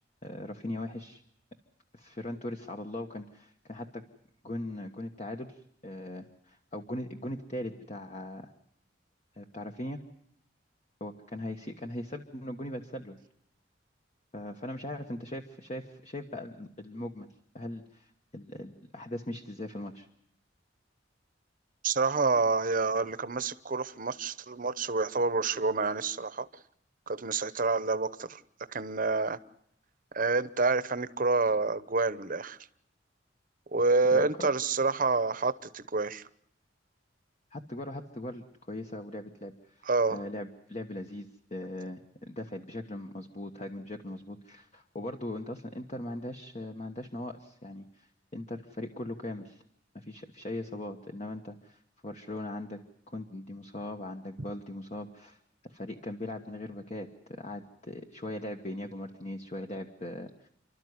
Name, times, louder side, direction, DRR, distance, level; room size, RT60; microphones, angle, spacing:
voice 1, 0.2-1.2 1.9-4.0 4.4-8.5 9.3-10.0 11.0-13.2 14.3-17.3 17.5-20.1 34.1-34.5 37.5-49.6 49.9-52.8 53.1-55.4 55.7-60.5, left 1 dB, 35° left, 1.3 m, -40 dB
voice 2, 21.8-26.5 27.1-28.4 28.7-29.4 30.1-32.6 33.7-36.2 39.9-40.2, right 3 dB, 45° right, 1.0 m, -28 dB
29.5 x 12.5 x 9.5 m
head